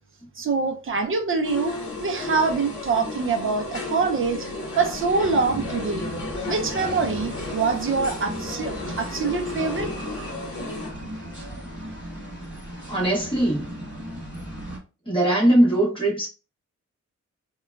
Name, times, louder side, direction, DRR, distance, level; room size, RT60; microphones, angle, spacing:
voice 1, 0.4-1.7 2.0-4.5 4.8-6.1 6.5-9.9, right 4 dB, 45° right, 0.4 m, -24 dB
sound 1, 1.4-10.9, left 2 dB, 50° left, 1.0 m, -34 dB
sound 2, 4.8-14.8, equal, 5° right, 1.2 m, -37 dB
voice 2, 12.9-13.7 15.0-16.3, right 1 dB, 15° left, 1.2 m, -20 dB
3.8 x 2.2 x 2.2 m
wide cardioid pair, 180°, 29 cm